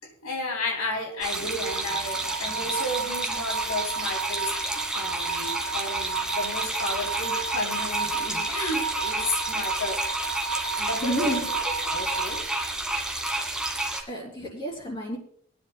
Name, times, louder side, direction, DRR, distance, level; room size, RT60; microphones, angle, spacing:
voice 1, 0.0-10.0 10.8-12.9, left 1 dB, 85° left, 2 dB, 3.2 m, -33 dB
sound 1, 1.2-14.0, right 2 dB, 5° right, 1.6 m, -30 dB
sound 2, 1.6-12.4, right 5 dB, 60° right, 0.5 m, -33 dB
voice 2, 11.0-11.4 14.1-15.2, equal, 25° left, -2 dB, 3.6 m, -30 dB
24.5 x 9.7 x 2.2 m, 0.64 s
head